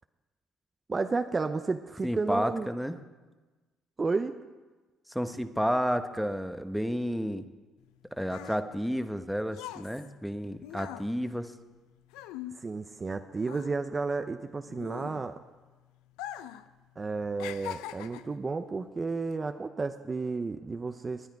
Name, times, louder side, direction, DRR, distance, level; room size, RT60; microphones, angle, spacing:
voice 1, 0.9-2.7 4.0-4.4 12.5-15.4 17.0-21.3, right 4 dB, 30° right, 8 dB, 0.7 m, -32 dB
voice 2, 2.0-3.0 5.1-7.5 8.1-11.5, equal, ahead, 8 dB, 1.0 m, -31 dB
sound 1, 7.8-13.2 13.4-15.6 16.1-16.7 17.0-18.4 19.1-19.3, left 12 dB, 90° left, 0.5 m, -42 dB
19.5 x 10.5 x 4.7 m, 1.3 s
supercardioid pair, 70°, 0 cm